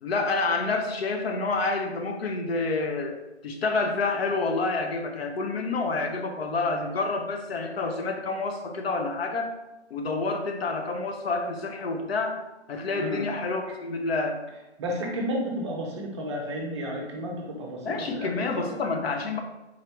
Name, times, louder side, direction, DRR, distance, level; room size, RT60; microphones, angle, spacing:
voice 1, 0.0-9.6 9.9-12.4 12.7-14.4 17.8-19.4, left 3 dB, 65° left, 4 dB, 0.7 m, -28 dB
voice 2, 14.8-17.9 18.2-18.3 18.6-18.7, equal, 25° right, -1 dB, 0.5 m, -32 dB
3.9 x 3.1 x 3.0 m, 1.0 s
figure-of-eight pair, 135°, 34 cm